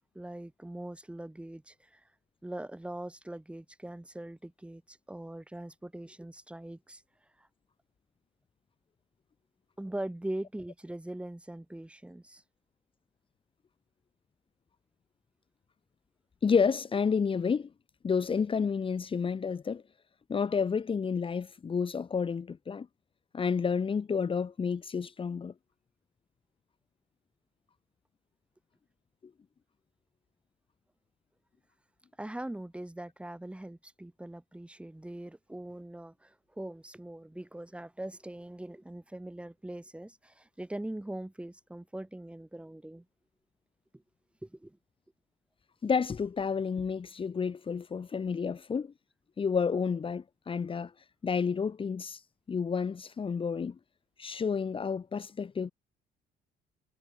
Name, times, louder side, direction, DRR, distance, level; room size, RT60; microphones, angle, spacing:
voice 1, 0.2-2.0 2.4-7.0 7.4-7.5 9.8-12.4 32.2-43.0 43.9-44.0 44.4-44.8, right 1 dB, 5° right, 5.3 m, -41 dB
voice 2, 16.4-17.7 18.0-19.8 20.3-22.9 23.3-25.5 45.8-48.9 49.4-50.9 51.2-52.2 52.5-53.7 54.2-55.7, left 6 dB, 30° left, 2.4 m, -30 dB
cardioid pair, 110°, 17 cm